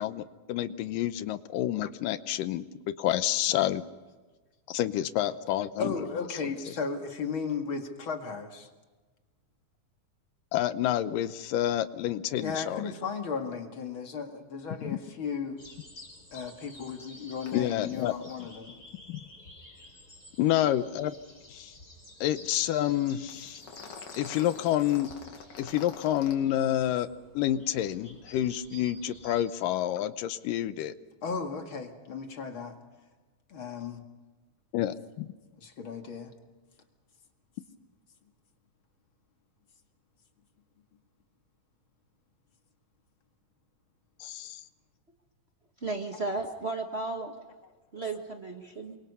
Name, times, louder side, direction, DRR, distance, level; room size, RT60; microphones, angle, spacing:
voice 1, 0.0-3.8 4.7-5.9 6.4-6.6 10.5-12.9 14.8-15.0 17.5-18.5 19.1-19.2 20.4-21.1 21.5-21.7 22.2-23.6 24.2-25.1 25.6-27.1 27.3-30.9 34.7-35.3 44.2-44.6, left 12 dB, 90° left, 12 dB, 2.5 m, -29 dB
voice 2, 5.8-8.7 12.4-15.6 16.3-18.8 31.2-32.7 33.5-34.0 35.6-36.3, left 5 dB, 45° left, 4 dB, 2.5 m, -35 dB
sound 1, 15.6-29.4, left 1 dB, 25° left, 5.5 m, -51 dB
sound 2, 17.5-17.6 17.9-18.0 18.3-18.4 23.3-26.3, left 6 dB, 70° left, 3.6 m, -46 dB
voice 3, 45.8-47.3 47.9-49.0, right 3 dB, 30° right, 2 dB, 1.1 m, -34 dB
28.5 x 25.0 x 5.5 m, 1.2 s
omnidirectional pair, 3.8 m